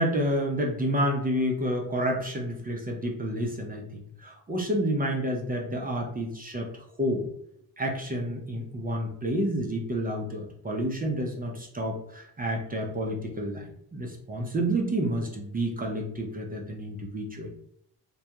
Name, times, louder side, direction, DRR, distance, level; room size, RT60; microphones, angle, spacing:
voice 1, 0.0-6.7 7.0-7.3 7.8-13.7 13.9-17.5, equal, 20° right, 0 dB, 0.6 m, -29 dB
2.3 x 2.2 x 2.8 m, 0.72 s
supercardioid pair, 60°, 43 cm